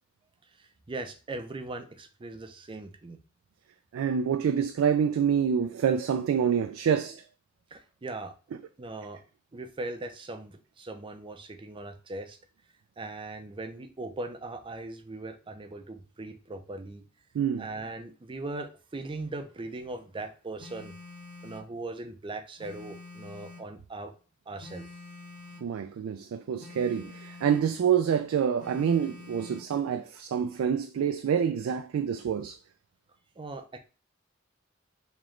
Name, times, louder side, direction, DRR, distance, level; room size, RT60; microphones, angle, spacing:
voice 1, 0.6-3.2 7.7-8.3 8.8-9.2 9.5-12.4 13.0-17.0 17.6-20.9 21.4-24.1 24.5-24.9 33.4-33.8, right 2 dB, 25° right, 0.5 m, -39 dB
voice 2, 3.9-7.2 17.3-17.6 25.6-32.6, right 7 dB, 90° right, 0.3 m, -27 dB
Telephone, 20.6-21.7 22.6-23.7 24.6-25.7 26.6-27.7 28.6-29.7, left 3 dB, 35° left, 0.8 m, -47 dB
3.1 x 3.0 x 3.7 m
head